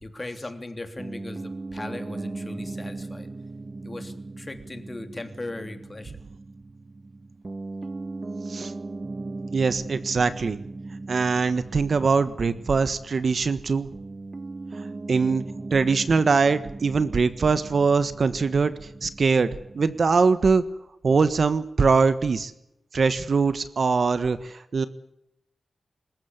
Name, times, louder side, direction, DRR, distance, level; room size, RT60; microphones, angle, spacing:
voice 1, 0.0-3.3 3.8-6.2, left 2 dB, 25° left, 7 dB, 3.2 m, -38 dB
Piano, 1.0-20.4, right 3 dB, 30° right, 1.2 m, -38 dB
voice 2, 9.5-10.6 11.1-13.9 15.1-15.4 15.7-19.5 19.7-20.6 21.0-22.5 22.9-24.9, right 4 dB, 55° right, 13 dB, 1.4 m, -22 dB
26.0 x 15.0 x 9.8 m, 0.81 s
wide cardioid pair, 110°, 0 cm